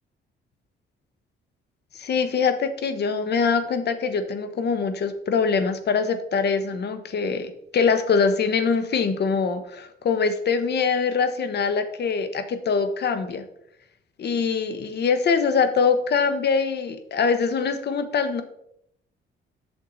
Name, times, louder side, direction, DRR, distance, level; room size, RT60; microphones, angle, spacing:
voice 1, 1.9-13.4 14.2-18.4, left 5 dB, 55° left, 10 dB, 1.2 m, -23 dB
8.8 x 6.5 x 4.1 m, 0.74 s
cardioid pair, 90°, 20 cm